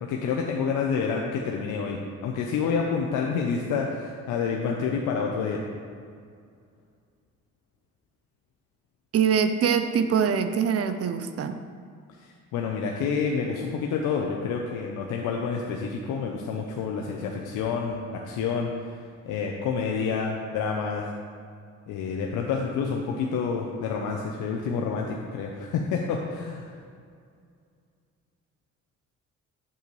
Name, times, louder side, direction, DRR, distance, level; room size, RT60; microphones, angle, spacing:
voice 1, 0.0-5.6 12.2-19.0 19.3-21.1 21.9-26.7, left 5 dB, 90° left, 0 dB, 0.7 m, -28 dB
voice 2, 9.1-11.6, right 7 dB, 50° right, 9 dB, 0.5 m, -23 dB
7.8 x 6.9 x 3.1 m, 2.2 s
cardioid pair, 90°, 30 cm